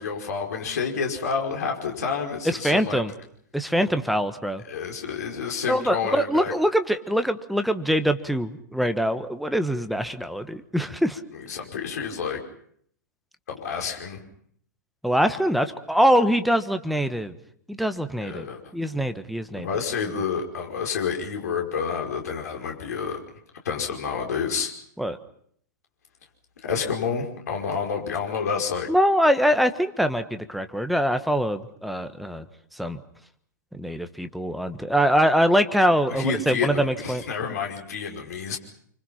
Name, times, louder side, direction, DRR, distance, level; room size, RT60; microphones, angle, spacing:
voice 1, 0.0-3.0 4.7-6.5 11.5-12.4 13.5-14.2 18.2-18.6 19.5-23.2 23.6-24.7 26.6-28.9 36.1-38.6, left 6 dB, 60° left, 1 dB, 5.3 m, -29 dB
voice 2, 2.4-3.1 3.5-4.6 5.7-11.2 15.0-17.3 17.7-18.5 18.7-19.7 25.0-25.2 28.9-32.4 32.8-33.0 33.7-37.2, equal, ahead, 9 dB, 1.4 m, -23 dB
28.5 x 25.5 x 5.9 m, 0.65 s
figure-of-eight pair, 105°, 10 cm